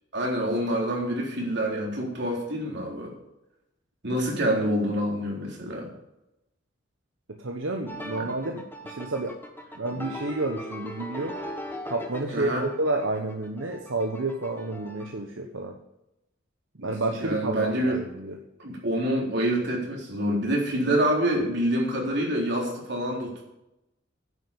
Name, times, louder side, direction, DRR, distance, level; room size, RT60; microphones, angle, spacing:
voice 1, 0.1-3.1 4.0-5.9 8.2-8.3 12.3-12.7 16.8-18.0 18.6-23.4, right 1 dB, 60° right, -1 dB, 3.7 m, -27 dB
voice 2, 7.4-9.4 9.7-11.4 11.8-15.8 16.8-18.4, right 2 dB, 80° right, 3 dB, 1.1 m, -30 dB
sound 1, 7.9-15.1, equal, 10° left, 1.6 m, -39 dB
10.5 x 8.0 x 6.9 m, 0.90 s
head